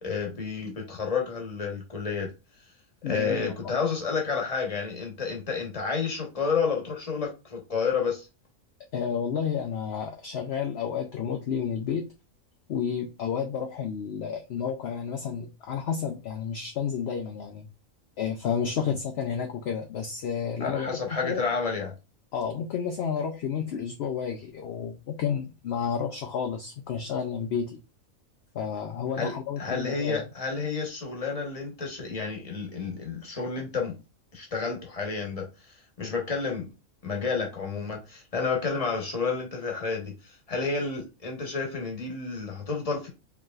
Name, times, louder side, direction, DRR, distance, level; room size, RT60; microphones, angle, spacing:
voice 1, 0.0-2.3 3.0-8.3 20.6-21.9 29.2-34.0 34.3-36.7 37.0-43.1, left 5 dB, 30° left, 1.1 m, -30 dB
voice 2, 3.0-3.8 8.9-12.1 12.7-17.7 18.2-20.9 21.2-21.4 22.3-27.8 28.5-30.3, left 7 dB, 60° left, 0.8 m, -31 dB
4.7 x 3.1 x 2.4 m
omnidirectional pair, 1.4 m